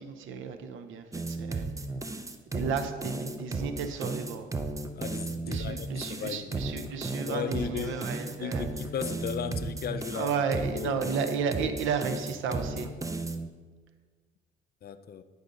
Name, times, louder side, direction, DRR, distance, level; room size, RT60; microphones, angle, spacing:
voice 1, 0.0-1.7 2.5-4.5 5.4-8.7 10.1-12.9, right 6 dB, 80° right, 8 dB, 0.7 m, -33 dB
sound 1, 1.1-13.5, right 2 dB, 15° right, 0.5 m, -34 dB
voice 2, 4.9-6.6 7.3-10.3 10.7-11.0 14.8-15.2, left 8 dB, 50° left, 12 dB, 0.5 m, -36 dB
9.5 x 5.2 x 3.8 m, 1.5 s
cardioid pair, 90°, 20 cm